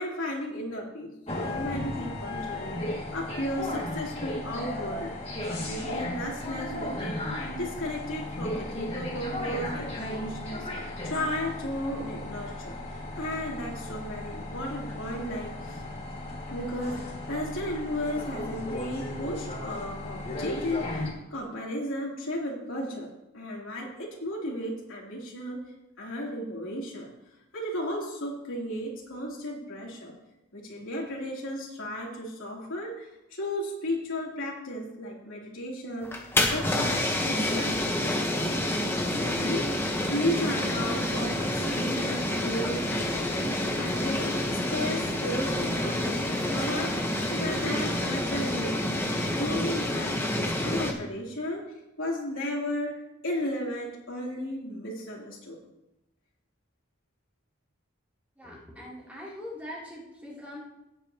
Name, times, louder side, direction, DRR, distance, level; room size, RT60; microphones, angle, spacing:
voice 1, 0.0-5.1 5.5-15.8 16.5-23.1 23.3-25.6 26.0-27.1 27.5-30.1 30.5-36.2 36.5-38.5 38.9-43.3 43.7-48.9 49.4-55.6, left 1 dB, 85° left, -3 dB, 3.2 m, -34 dB
sound 1, 1.3-21.1, left 1 dB, 30° left, 2.1 m, -35 dB
sound 2, 36.0-50.9, left 1 dB, 10° left, 1.0 m, -28 dB
voice 2, 58.4-60.6, left 1 dB, 5° right, -6 dB, 3.0 m, -42 dB
17.0 x 9.0 x 2.9 m, 0.92 s
head